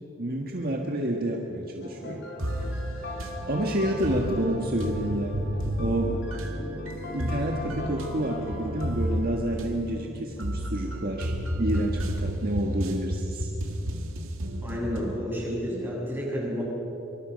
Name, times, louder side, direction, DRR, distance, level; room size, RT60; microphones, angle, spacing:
voice 1, 0.2-2.3 2.6-2.7 3.5-5.4 5.8-6.2 7.1-13.5, right 1 dB, 45° right, 0 dB, 1.7 m, -29 dB
sound 1, 1.8-9.3, left 1 dB, 60° left, 3.4 m, -39 dB
sound 2, 2.4-15.2, equal, 90° right, 2.1 m, -32 dB
voice 2, 14.6-16.6, equal, 10° right, -5 dB, 7.3 m, -30 dB
25.0 x 24.0 x 5.3 m, 2.9 s
head